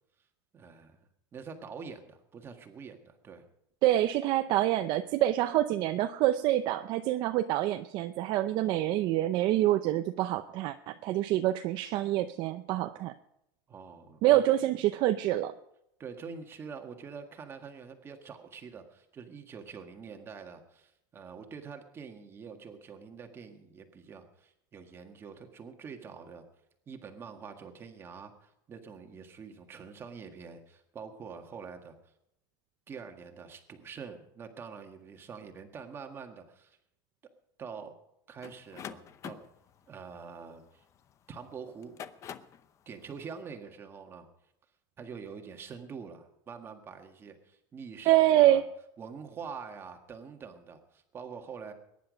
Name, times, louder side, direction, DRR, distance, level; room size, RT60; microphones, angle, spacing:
voice 1, 0.5-1.0 1.3-3.4 13.7-14.4 16.0-26.4 26.9-31.9 32.9-36.8 37.6-37.9 38.3-39.4 39.9-40.8 41.3-42.0 42.8-44.3 45.0-48.6 49.0-51.7, right 6 dB, 20° right, 5 dB, 1.7 m, -45 dB
voice 2, 3.8-13.1 14.2-15.5 48.1-48.6, right 14 dB, 45° right, 9 dB, 0.6 m, -26 dB
sound 1, 38.4-41.1 41.7-42.6, left 9 dB, 25° left, 0.7 m, -45 dB
21.5 x 10.5 x 5.1 m, 0.81 s
cardioid pair, 165°, 11 cm